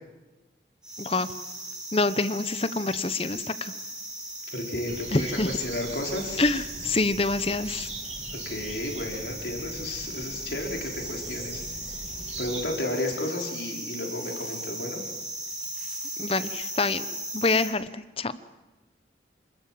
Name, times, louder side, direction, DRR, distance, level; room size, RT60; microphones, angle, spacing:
sound 1, 0.8-17.7, right 1 dB, 5° right, 6.1 m, -37 dB
voice 1, 1.9-3.7 5.1-5.5 6.4-7.9 16.2-17.0 17.3-18.4, left 3 dB, 35° left, 13 dB, 0.9 m, -26 dB
voice 2, 4.5-6.4 8.4-11.6 12.4-15.0, left 1 dB, 75° left, 0 dB, 4.8 m, -32 dB
sound 2, 4.9-12.6, right 3 dB, 35° right, 2.9 m, -41 dB
27.0 x 20.0 x 7.6 m, 1.1 s
head